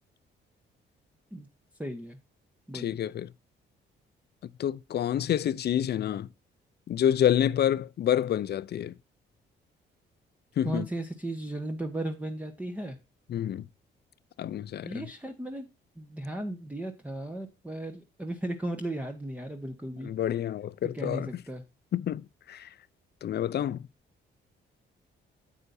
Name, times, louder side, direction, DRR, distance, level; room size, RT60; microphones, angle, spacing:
voice 1, 1.8-2.2 2.7-2.9 10.6-13.0 14.8-15.7 16.0-20.1 20.9-21.6, right 1 dB, 5° right, 1.2 m, -36 dB
voice 2, 2.7-3.3 4.4-6.3 6.9-9.0 10.6-10.9 13.3-13.7 14.4-15.1 20.0-21.4 21.9-22.7 23.2-23.9, left 10 dB, 55° left, 0.6 m, -28 dB
9.8 x 8.1 x 2.7 m
cardioid pair, 90°, 20 cm